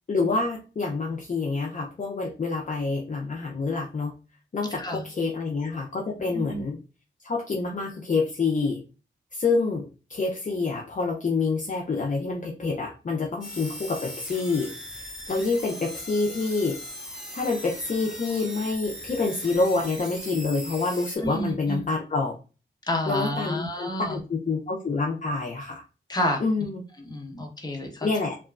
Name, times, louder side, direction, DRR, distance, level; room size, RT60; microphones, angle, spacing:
voice 1, 0.1-4.1 4.5-6.8 7.2-8.8 9.3-14.7 15.0-16.8 17.3-22.4 23.1-25.8 26.4-26.8 28.0-28.4, left 3 dB, 40° left, 0 dB, 0.5 m, -27 dB
voice 2, 6.3-6.6 21.2-21.9 22.9-24.2 26.1-26.4 27.0-28.1, left 1 dB, 20° left, 1 dB, 0.9 m, -29 dB
sound 1, 13.4-21.2, equal, 5° right, 1.2 m, -39 dB
2.9 x 2.2 x 2.4 m, 0.33 s
cardioid pair, 45°, 20 cm